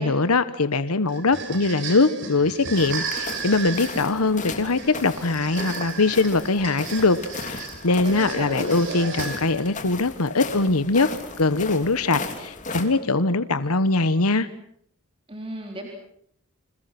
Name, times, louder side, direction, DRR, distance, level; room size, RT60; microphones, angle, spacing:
voice 1, 0.0-11.1 11.4-14.5, left 3 dB, 80° left, 13 dB, 1.2 m, -22 dB
sound 1, 1.1-9.7, right 5 dB, 55° right, 6.2 m, -35 dB
sound 2, 2.8-12.8, left 3 dB, 35° left, 3.4 m, -36 dB
voice 2, 8.0-8.7 15.3-15.9, right 1 dB, 25° right, 2 dB, 4.0 m, -34 dB
30.0 x 27.0 x 6.0 m, 0.68 s
head